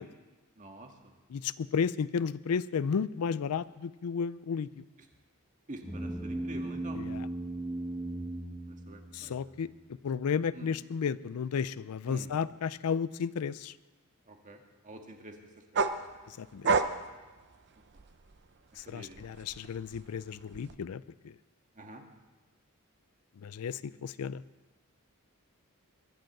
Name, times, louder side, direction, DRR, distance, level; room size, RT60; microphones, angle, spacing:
voice 1, 0.6-0.9 5.7-7.0 8.7-9.3 10.6-10.7 12.1-12.3 14.3-15.3 15.7-15.8 18.9-19.2 21.8-22.0, right 1 dB, 35° right, 3 dB, 1.8 m, -47 dB
voice 2, 1.3-4.7 6.9-7.3 9.1-9.7 10.0-13.7 16.4-16.7 18.8-21.0 23.4-24.4, left 6 dB, 85° left, 16 dB, 0.4 m, -33 dB
sound 1, 5.8-9.5, right 1 dB, 10° right, 1.2 m, -37 dB
sound 2, 15.7-18.4 18.8-20.8, right 4 dB, 50° right, 0.7 m, -31 dB
22.5 x 7.7 x 7.8 m, 1.2 s
head